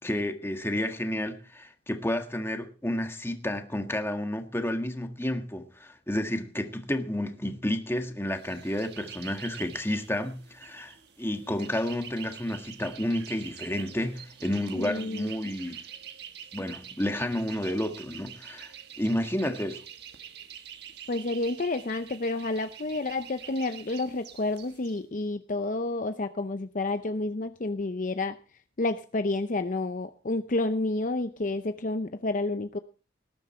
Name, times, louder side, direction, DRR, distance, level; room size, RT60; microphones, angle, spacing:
voice 1, 0.0-15.8 16.5-18.7 19.0-19.8, left 1 dB, 15° left, 1.6 m, -31 dB
sound 1, 8.3-25.0, right 9 dB, 60° right, 1.5 m, -46 dB
voice 2, 14.7-15.5 21.1-28.4 28.8-32.8, left 2 dB, 45° left, 0.7 m, -30 dB
19.0 x 10.5 x 4.4 m
head